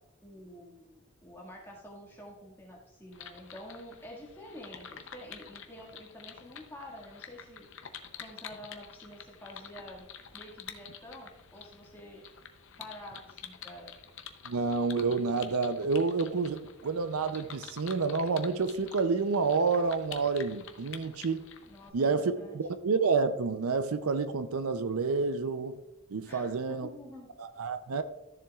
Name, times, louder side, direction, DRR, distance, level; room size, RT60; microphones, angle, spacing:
voice 1, 0.2-7.7 8.2-10.0 10.3-12.2 12.8-13.9 21.7-22.6 26.2-27.3, left 1 dB, 10° left, 1.8 m, -48 dB
sound 1, 3.1-21.9, left 7 dB, 55° left, 0.7 m, -48 dB
voice 2, 14.5-21.4 21.9-25.8 26.1-26.9 27.4-28.0, right 4 dB, 75° right, 0.5 m, -29 dB
13.5 x 7.1 x 2.4 m
head